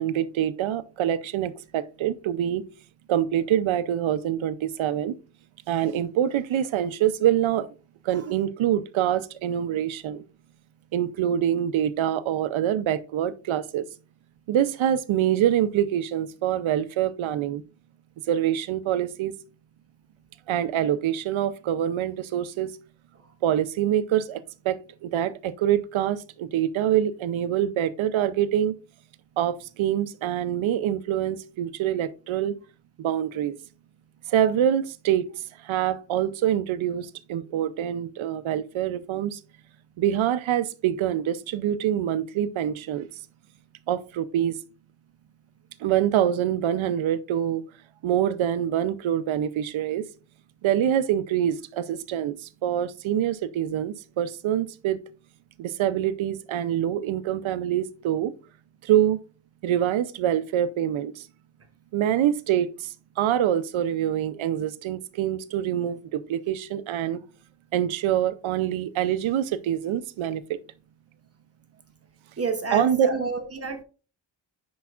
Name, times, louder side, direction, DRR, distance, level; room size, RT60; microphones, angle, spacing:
voice 1, 0.0-2.6 3.1-5.1 5.7-7.7 8.0-10.2 10.9-13.8 14.5-17.6 18.3-19.4 20.5-22.7 23.4-28.8 29.4-32.6 33.0-33.5 34.3-35.3 35.6-39.4 40.0-43.1 43.9-44.6 45.8-47.6 48.0-50.0 50.6-55.0 55.6-58.3 58.8-59.2 59.6-61.3 61.9-67.2 67.7-70.6 72.7-73.1, right 10 dB, 90° right, 0.6 m, -25 dB
voice 2, 72.4-73.8, right 4 dB, 30° right, 0.8 m, -29 dB
10.0 x 4.7 x 2.4 m
wide cardioid pair, 175°, 46 cm